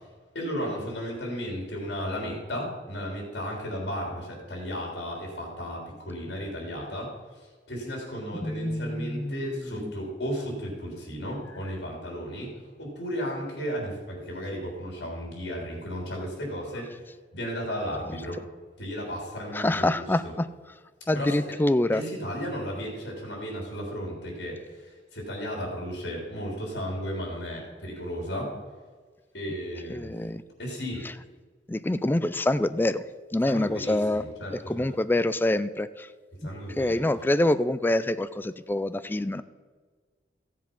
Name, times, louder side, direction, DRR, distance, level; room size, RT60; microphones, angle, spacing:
voice 1, 0.3-7.1 7.7-12.5 12.8-16.9 17.3-18.4 18.8-20.3 21.1-21.4 21.9-28.5 29.3-30.1 30.6-31.0 33.4-34.9 36.4-37.0, equal, 70° left, -1 dB, 3.4 m, -34 dB
voice 2, 8.4-9.9 19.5-20.5 21.1-22.0 29.9-30.4 31.7-33.0 33.3-34.2 34.7-36.1 36.4-39.4, left 1 dB, 10° left, 14 dB, 0.4 m, -26 dB
15.0 x 7.5 x 5.3 m, 1.4 s
head